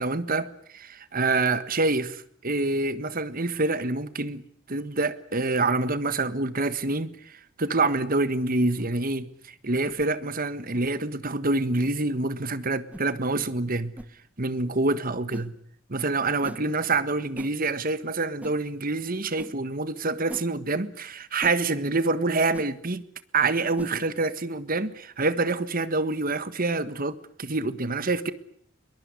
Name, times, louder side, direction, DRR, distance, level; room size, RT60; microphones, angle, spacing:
voice 1, 0.0-13.9 14.4-15.6 15.9-23.0 23.3-28.3, right 3 dB, 45° right, 1.6 m, -26 dB
sound 1, 8.8-8.9 9.8-10.0 10.7-10.9 11.8-11.9 12.9-13.1 13.9-14.1 15.3-15.5 16.4-16.6 17.3-17.5 18.4-18.6 19.4-19.5 20.3-20.5 21.4-21.6 22.5-22.7 23.7-24.0, equal, 5° right, 1.1 m, -41 dB
22.0 x 22.0 x 9.8 m
head